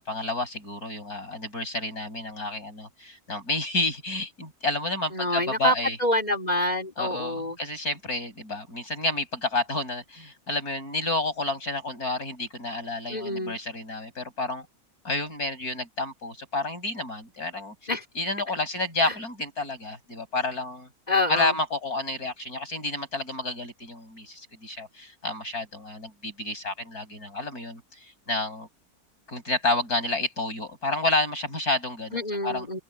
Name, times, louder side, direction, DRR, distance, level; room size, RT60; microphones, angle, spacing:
voice 1, 0.0-6.0 7.0-14.7 15.0-17.7 18.1-20.9 21.3-28.7 29.3-32.7, left 2 dB, 75° left, 8.4 m, -30 dB
voice 2, 5.1-5.7 6.0-7.6 13.1-13.6 17.9-18.0 19.0-19.2 21.1-21.6 32.1-32.8, left 1 dB, 25° left, 4.2 m, -26 dB
open air
omnidirectional pair, 1.6 m